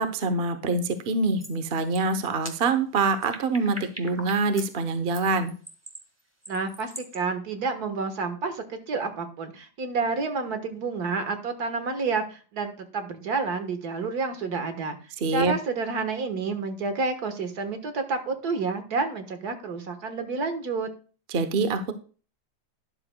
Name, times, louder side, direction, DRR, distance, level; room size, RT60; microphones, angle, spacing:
voice 1, 0.0-5.5 15.2-15.5 21.3-21.9, right 3 dB, 45° right, 9 dB, 0.8 m, -25 dB
sound 1, 1.0-1.1 1.4-1.6 1.9-4.7 5.1-7.2, right 1 dB, 10° right, 1.4 m, -41 dB
voice 2, 6.5-15.0 15.3-20.9, right 4 dB, 60° right, 7 dB, 1.8 m, -29 dB
12.5 x 10.5 x 2.2 m, 0.38 s
omnidirectional pair, 2.0 m